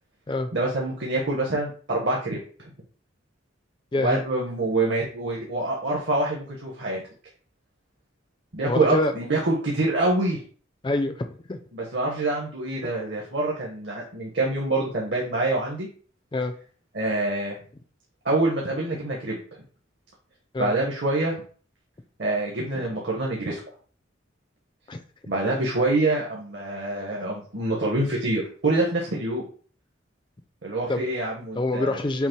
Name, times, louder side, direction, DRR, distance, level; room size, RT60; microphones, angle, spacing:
voice 1, 0.5-2.7 4.0-7.0 8.5-10.4 11.7-15.9 16.9-17.6 18.2-19.4 20.6-21.4 22.2-23.6 25.3-29.4 30.6-32.0, right 2 dB, 60° right, -2 dB, 1.0 m, -26 dB
voice 2, 3.9-4.2 8.7-9.1 10.8-11.6 16.3-16.5 20.5-20.7 24.9-25.0 30.9-31.1 31.5-32.3, left 2 dB, 25° left, 7 dB, 0.4 m, -26 dB
5.7 x 2.0 x 4.4 m, 0.42 s
head